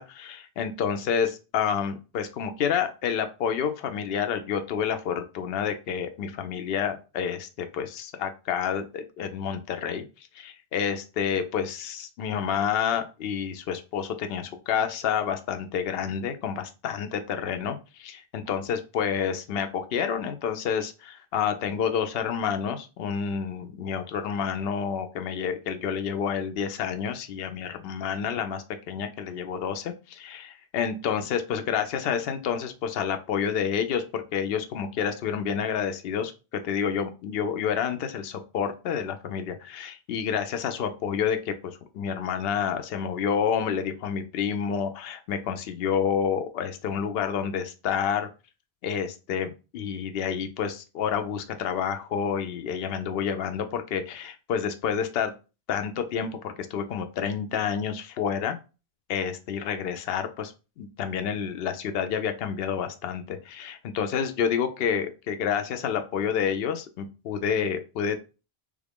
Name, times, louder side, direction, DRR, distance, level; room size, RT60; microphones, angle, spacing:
voice 1, 0.0-48.3 48.8-55.3 55.7-58.6 59.1-68.2, left 7 dB, 75° left, 7 dB, 0.8 m, -29 dB
3.4 x 2.4 x 3.4 m, 0.31 s
omnidirectional pair, 1.0 m